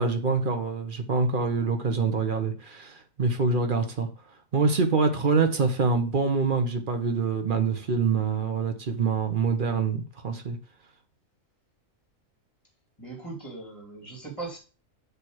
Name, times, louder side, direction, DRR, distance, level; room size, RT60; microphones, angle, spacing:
voice 1, 0.0-4.1 4.5-10.6, right 4 dB, 40° right, 7 dB, 1.0 m, -25 dB
voice 2, 13.0-14.6, right 3 dB, 20° left, 0 dB, 2.5 m, -39 dB
7.4 x 3.4 x 6.2 m, 0.35 s
omnidirectional pair, 1.4 m